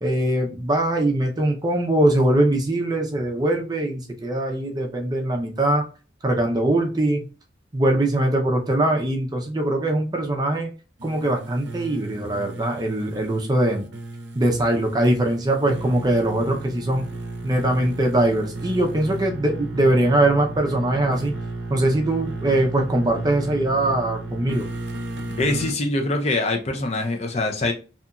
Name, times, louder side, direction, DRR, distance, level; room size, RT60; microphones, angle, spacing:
voice 1, 0.0-5.8 6.2-7.3 7.7-10.7 11.0-13.9 14.3-17.0 17.4-21.3 21.7-24.7, right 1 dB, 20° right, 0.5 m, -22 dB
sound 1, 11.0-25.8, right 2 dB, 80° right, 0.5 m, -34 dB
voice 2, 25.4-27.7, left 2 dB, 35° left, 0.4 m, -23 dB
2.8 x 2.6 x 2.2 m
head